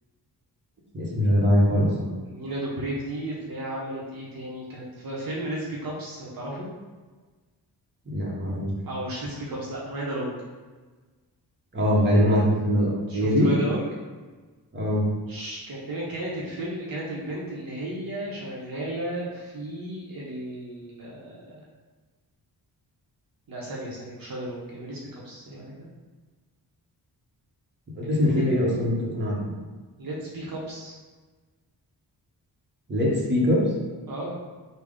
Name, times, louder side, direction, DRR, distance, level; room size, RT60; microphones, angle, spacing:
voice 1, 0.9-2.1 8.1-8.7 11.7-13.5 14.7-15.1 27.9-29.4 32.9-33.6, left 1 dB, 25° right, -5 dB, 1.0 m, -22 dB
voice 2, 2.2-6.7 8.9-10.4 13.1-13.8 15.3-21.6 23.5-25.0 25.2-25.9 28.0-28.5 30.0-30.9 34.1-34.4, right 1 dB, 55° right, -5 dB, 0.9 m, -34 dB
3.4 x 2.2 x 3.6 m, 1.4 s
wide cardioid pair, 100°, 40 cm